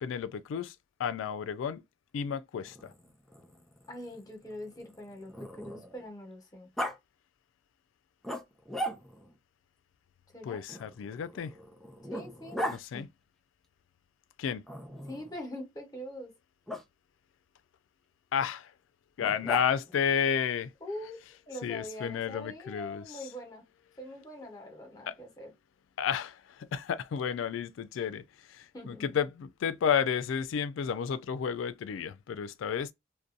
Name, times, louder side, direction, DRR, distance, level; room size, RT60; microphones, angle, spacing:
voice 1, 0.0-1.8 2.1-2.9 10.4-11.5 12.7-13.1 14.4-14.6 18.3-18.7 19.2-20.7 21.6-23.0 25.1-25.2 26.0-32.9, left 7 dB, 80° left, 0.3 m, -32 dB
Growling, 2.7-6.1 6.8-7.0 8.2-9.3 10.7-12.8 14.7-15.4 16.7-16.8 19.2-20.0, equal, ahead, 0.4 m, -39 dB
voice 2, 3.9-6.7 10.3-10.6 12.1-12.6 12.9-13.1 15.1-16.3 20.8-21.2 21.5-23.6 24.0-25.5 28.7-29.1, left 1 dB, 20° left, 0.9 m, -43 dB
2.6 x 2.1 x 2.4 m
head